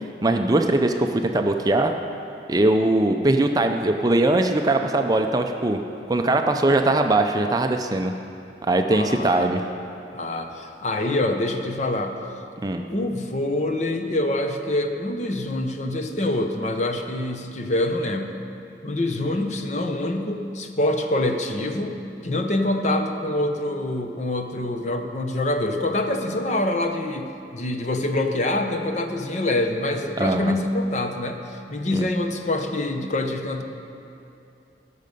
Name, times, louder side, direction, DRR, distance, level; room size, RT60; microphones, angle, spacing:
voice 1, 0.2-1.9 2.5-5.8 6.1-8.1 8.7-9.6 12.6-12.8 30.2-30.5 31.9-32.1, right 2 dB, 20° right, 5 dB, 0.4 m, -21 dB
voice 2, 8.9-9.5 10.1-12.2 12.9-18.4 18.8-33.6, left 1 dB, 40° left, 5 dB, 0.7 m, -25 dB
17.0 x 6.6 x 5.3 m, 2.6 s
head